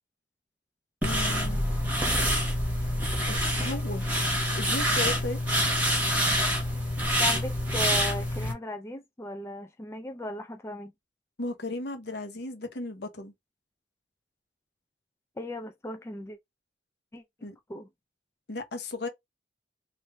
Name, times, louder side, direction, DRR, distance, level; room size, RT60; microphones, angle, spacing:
voice 1, 1.0-1.6 3.3-4.1 4.5-5.4 11.4-13.3 17.4-17.6 18.5-19.1, left 2 dB, 65° left, 0.9 m, -35 dB
sound 1, 1.0-8.5, equal, 10° right, 1.1 m, -26 dB
voice 2, 7.2-10.9 15.4-16.4 17.1-17.2 17.7-17.9, left 1 dB, 15° left, 0.4 m, -36 dB
3.3 x 2.5 x 3.4 m
head